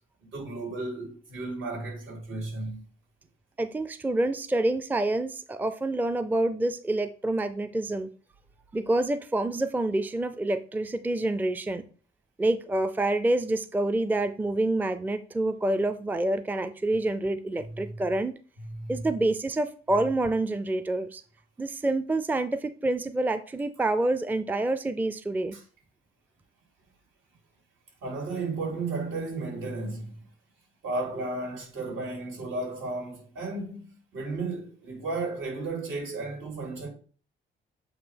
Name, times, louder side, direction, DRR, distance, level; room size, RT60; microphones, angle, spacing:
voice 1, 0.2-2.8 18.8-19.1 25.5-25.6 28.0-30.2 30.8-36.9, right 3 dB, 80° right, 3.3 m, -34 dB
voice 2, 3.6-8.1 8.7-11.9 12.4-18.3 18.9-21.2 21.6-25.6, right 2 dB, 10° right, 0.4 m, -27 dB
8.1 x 2.7 x 5.1 m
cardioid pair, 90°, 20 cm